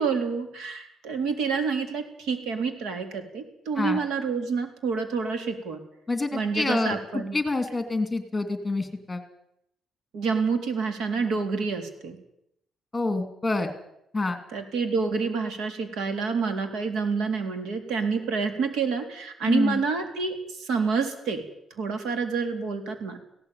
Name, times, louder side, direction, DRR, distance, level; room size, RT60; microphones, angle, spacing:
voice 1, 0.0-5.8 6.3-7.4 10.1-12.2 14.5-21.4 21.8-23.2, right 5 dB, 85° right, 7 dB, 3.7 m, -28 dB
voice 2, 6.1-9.2 12.9-13.7 14.1-14.4 19.5-19.8, left 2 dB, 15° left, 8 dB, 2.6 m, -27 dB
18.5 x 17.0 x 9.4 m, 0.76 s
cardioid pair, 150°, 0 cm